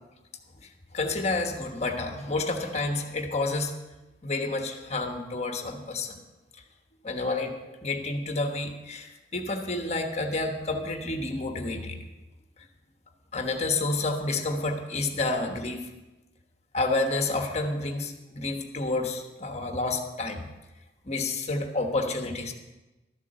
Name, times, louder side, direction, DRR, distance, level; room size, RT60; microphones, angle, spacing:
voice 1, 0.6-3.7 4.2-6.2 7.0-12.0 13.3-15.9 16.7-20.5 21.0-22.5, left 2 dB, 40° left, 4 dB, 1.2 m, -29 dB
13.0 x 7.2 x 6.9 m, 1.1 s
head